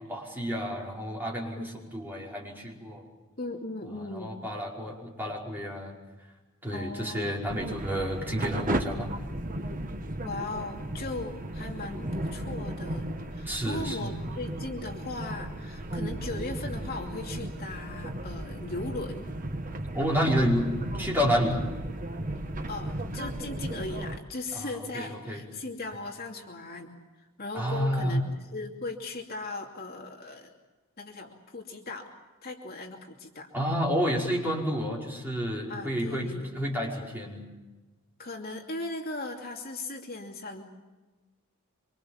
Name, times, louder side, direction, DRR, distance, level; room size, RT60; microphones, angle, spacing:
voice 1, 0.0-3.0 4.0-6.0 6.6-9.1 13.5-14.2 19.9-21.6 24.5-25.4 27.5-28.2 33.5-37.5, equal, 10° right, -3 dB, 5.3 m, -30 dB
voice 2, 3.4-4.4 6.7-7.3 10.2-19.3 22.7-26.9 27.2-30.5 31.0-32.1 32.4-33.5 35.7-36.5 38.2-40.6, left 2 dB, 45° left, 1 dB, 2.7 m, -38 dB
sound 1, 7.5-24.2, right 1 dB, 40° right, 1.3 m, -35 dB
25.5 x 25.5 x 7.4 m, 1.2 s
head